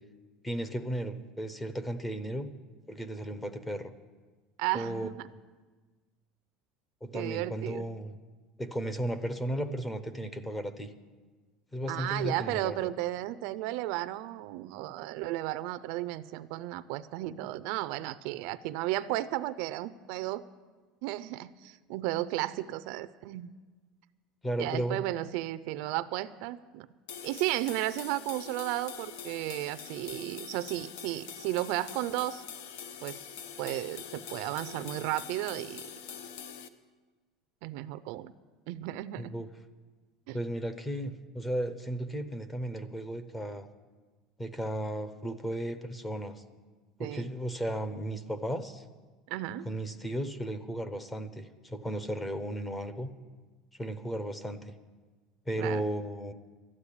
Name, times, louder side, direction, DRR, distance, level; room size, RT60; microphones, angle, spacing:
voice 1, 0.4-2.5 2.9-3.9 4.7-5.3 7.0-8.1 8.6-10.9 11.7-12.9 24.4-25.1 39.2-39.5 40.3-43.7 44.4-46.4 47.0-48.8 49.6-53.1 53.8-54.7 55.5-56.3, right 1 dB, 10° left, 11 dB, 0.6 m, -35 dB
voice 2, 4.6-5.3 7.1-7.9 11.9-20.4 21.0-23.5 24.6-26.9 27.2-32.4 33.0-33.2 33.6-35.9 37.6-38.3 38.7-39.3 40.3-40.4 47.0-47.3 49.3-49.7 55.6-55.8, right 16 dB, 60° right, 14 dB, 0.4 m, -34 dB
sound 1, 27.1-36.7, left 7 dB, 80° left, 0.8 m, -44 dB
12.5 x 8.6 x 9.8 m, 1.4 s
cardioid pair, 175°, 0 cm